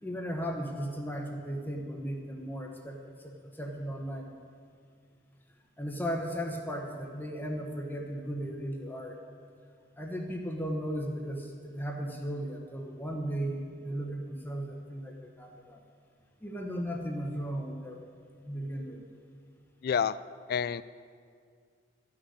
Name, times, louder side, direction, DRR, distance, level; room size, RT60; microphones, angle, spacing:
voice 1, 0.0-4.3 5.8-9.2 10.0-15.8 16.4-18.0 18.4-19.0, equal, 10° left, 1 dB, 1.0 m, -36 dB
voice 2, 19.8-20.2 20.5-20.8, left 7 dB, 55° left, 17 dB, 0.3 m, -28 dB
13.0 x 6.5 x 9.5 m, 2.1 s
head